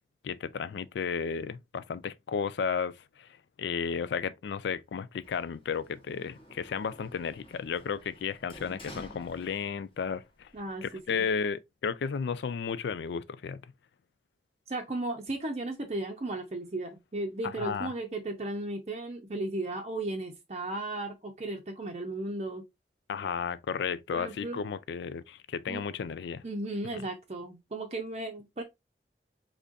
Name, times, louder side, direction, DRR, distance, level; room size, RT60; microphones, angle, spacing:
voice 1, 0.2-3.3 3.6-10.5 10.8-13.6 17.6-17.9 23.1-26.4 26.9-27.0, left 6 dB, 80° left, 0.3 m, -33 dB
Sliding door, 5.2-10.1 10.4-11.3, equal, 30° left, 0.9 m, -51 dB
voice 2, 10.5-10.8 11.2-11.3 14.7-22.6 24.1-24.6 25.7-25.8 26.4-28.6, right 2 dB, 35° right, 0.6 m, -35 dB
3.7 x 3.4 x 2.5 m
head